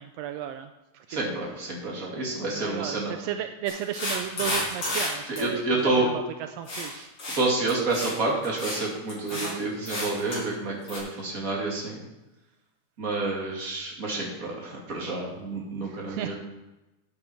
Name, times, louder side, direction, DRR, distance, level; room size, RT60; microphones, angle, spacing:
voice 1, 0.0-1.4 2.5-7.1 9.3-9.6 15.9-16.4, right 10 dB, 80° right, 8 dB, 1.5 m, -35 dB
voice 2, 1.1-3.1 5.3-6.1 7.3-12.0 13.0-16.4, right 2 dB, 30° right, -2 dB, 2.5 m, -29 dB
sound 1, 3.7-5.1 5.4-5.5 6.7-6.9 7.2-7.4 7.7-8.1 8.4-8.8 9.1-9.5 9.8-10.4 10.9-11.0, left 1 dB, 35° left, 5.7 m, -31 dB
12.5 x 8.7 x 4.4 m, 1.0 s
omnidirectional pair, 3.4 m